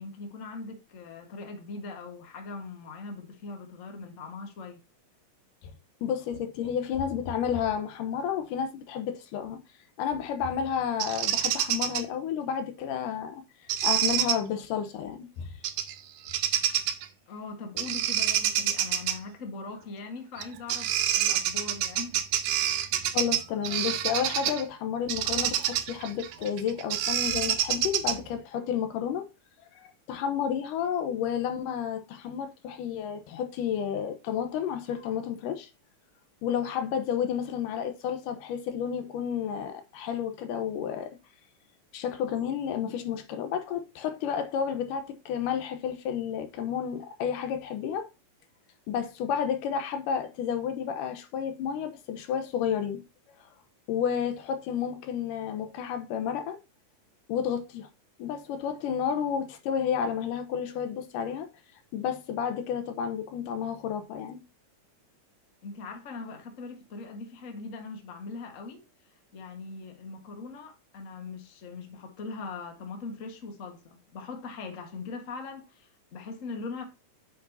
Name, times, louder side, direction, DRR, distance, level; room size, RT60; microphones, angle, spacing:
voice 1, 0.0-4.8 17.3-22.2 65.6-68.8 69.3-76.8, left 4 dB, 40° left, 1.2 m, -41 dB
voice 2, 6.0-9.6 10.0-13.4 13.8-15.5 23.1-29.2 29.7-35.7 36.4-41.1 41.9-48.1 48.9-53.0 53.9-56.6 57.3-57.9 58.2-61.5 61.9-64.4, left 8 dB, 85° left, 2.6 m, -31 dB
Bird vocalization bird call bird song, 11.0-12.0 13.7-14.4 15.6-15.9 16.3-17.1 17.8-19.2 20.4-20.5 20.7-24.6 25.1-28.3, right 11 dB, 90° right, 2.4 m, -27 dB
8.7 x 5.9 x 2.8 m
omnidirectional pair, 3.7 m